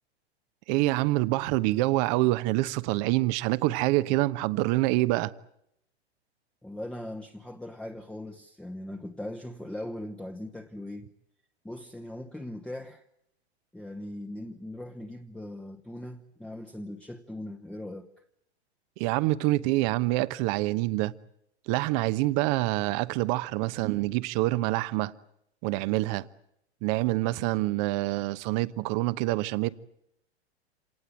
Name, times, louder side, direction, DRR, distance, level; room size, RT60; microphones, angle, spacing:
voice 1, 0.7-5.3 19.0-21.1 21.7-25.1 25.6-26.3 26.8-29.7, right 19 dB, 40° right, 1.0 m, -26 dB
voice 2, 6.6-11.1 11.6-13.0 13.7-18.1, left 1 dB, 5° left, 1.1 m, -40 dB
27.0 x 18.5 x 9.2 m
figure-of-eight pair, 100°, 33 cm